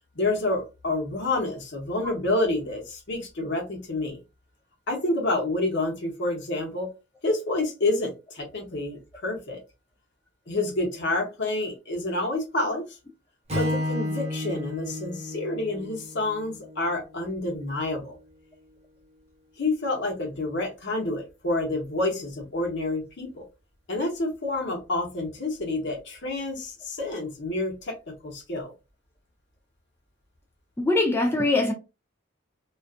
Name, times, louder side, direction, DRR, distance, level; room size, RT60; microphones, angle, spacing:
voice 1, 0.1-4.2 4.9-6.9 7.2-9.6 10.5-13.0 13.5-18.2 19.6-23.4 23.9-28.7, left 2 dB, 60° left, 0.9 m, -28 dB
Strum, 13.5-17.8, left 1 dB, 30° right, 0.8 m, -32 dB
voice 2, 30.8-31.7, left 2 dB, 10° left, 0.3 m, -22 dB
2.4 x 2.4 x 2.4 m
head